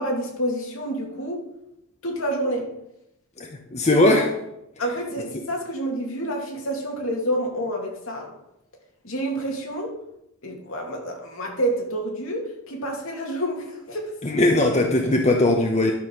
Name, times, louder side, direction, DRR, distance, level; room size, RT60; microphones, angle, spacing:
voice 1, 0.0-1.5 2.0-2.7 4.8-8.3 9.0-9.9 10.4-14.1, right 1 dB, 65° left, 1 dB, 2.4 m, -28 dB
voice 2, 3.7-4.3 14.2-15.9, left 2 dB, 30° left, 2 dB, 0.9 m, -19 dB
12.0 x 5.7 x 6.4 m, 0.83 s
head